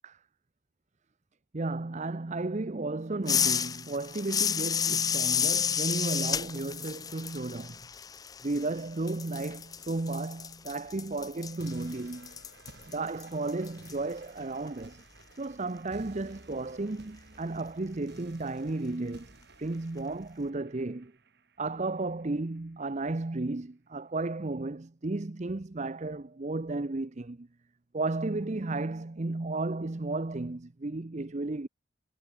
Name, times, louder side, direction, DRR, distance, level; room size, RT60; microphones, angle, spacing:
voice 1, 1.5-7.8 8.4-12.3 12.9-15.0 15.4-21.1 21.6-27.5 27.9-31.7, right 2 dB, 35° right, 0.6 m, -34 dB
sound 1, 3.3-8.8 9.1-13.9, left 8 dB, 20° left, 0.3 m, -31 dB
sound 2, 11.6-22.6, right 2 dB, 50° right, 7.2 m, -55 dB
head